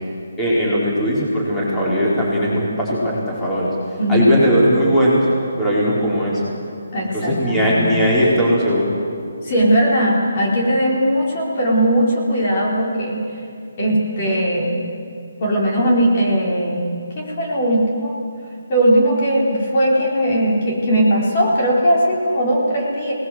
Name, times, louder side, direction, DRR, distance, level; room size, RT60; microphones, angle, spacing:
voice 1, 0.4-3.7 4.1-5.3 5.6-6.4 7.1-8.9, equal, 5° left, -8 dB, 4.8 m, -18 dB
voice 2, 4.0-4.6 6.9-7.9 9.4-13.2 13.8-14.8 15.4-16.8 17.2-18.1 18.7-23.1, equal, 35° left, -3 dB, 4.6 m, -18 dB
25.0 x 19.5 x 7.9 m, 2.4 s
hypercardioid pair, 170°, 0 cm